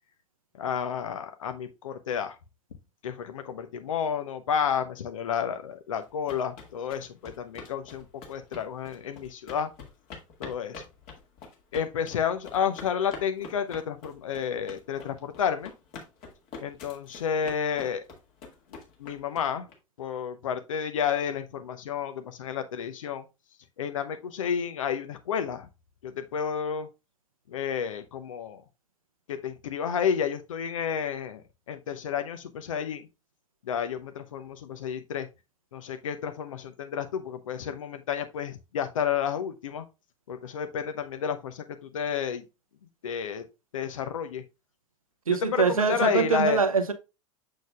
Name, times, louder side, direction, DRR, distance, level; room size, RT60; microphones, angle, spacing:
voice 1, 0.6-2.4 3.0-9.7 10.4-10.8 11.7-15.7 16.6-18.0 19.0-19.7 20.0-23.3 23.8-25.7 26.0-26.9 27.5-28.6 29.3-33.1 33.6-35.3 35.7-39.8 40.3-42.4 43.0-43.4 43.7-44.4 45.4-46.6, left 7 dB, 70° left, 0.8 m, -31 dB
sound 1, 6.0-19.7, left 4 dB, 50° left, 2.1 m, -45 dB
voice 2, 45.3-46.9, right 5 dB, 85° right, 0.8 m, -24 dB
6.7 x 6.3 x 2.4 m
figure-of-eight pair, 85°, 17 cm